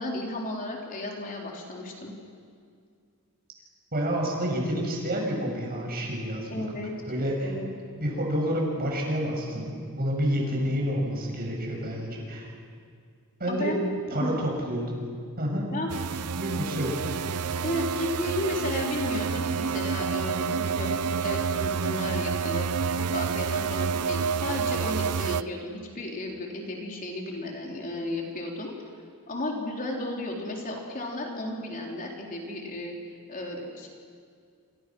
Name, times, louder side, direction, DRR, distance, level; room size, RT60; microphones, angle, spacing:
voice 1, 0.0-2.1 6.5-6.9 7.4-7.7 13.5-13.8 14.2-14.3 15.7-16.0 17.3-20.9 21.2-28.7 29.3-32.9 33.3-33.9, left 1 dB, 40° left, -1 dB, 4.0 m, -34 dB
voice 2, 3.9-6.6 7.1-7.5 8.0-12.5 13.4-13.8 14.1-15.1 15.4-15.7 16.3-17.0, equal, 45° right, 0 dB, 7.4 m, -29 dB
sound 1, 15.9-25.4, right 6 dB, 80° right, 0.6 m, -29 dB
28.5 x 28.0 x 6.4 m, 2.2 s
head